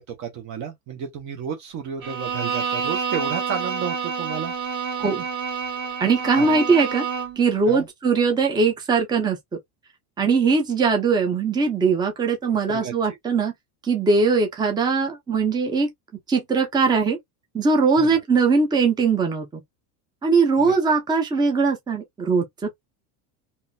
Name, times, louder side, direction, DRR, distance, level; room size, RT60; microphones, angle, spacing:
voice 1, 0.0-4.5 6.3-6.6 7.7-7.9 12.7-12.9 18.0-18.2 20.6-20.7, right 7 dB, 40° right, 1.0 m, -32 dB
Bowed string instrument, 2.0-7.5, right 6 dB, 60° right, 2.4 m, -28 dB
voice 2, 6.0-7.0 7.4-9.4 10.2-13.5 13.8-15.9 16.3-17.2 17.5-19.6 20.2-22.7, right 4 dB, 10° right, 0.7 m, -20 dB
3.7 x 2.7 x 2.3 m
cardioid pair, 160°, 43 cm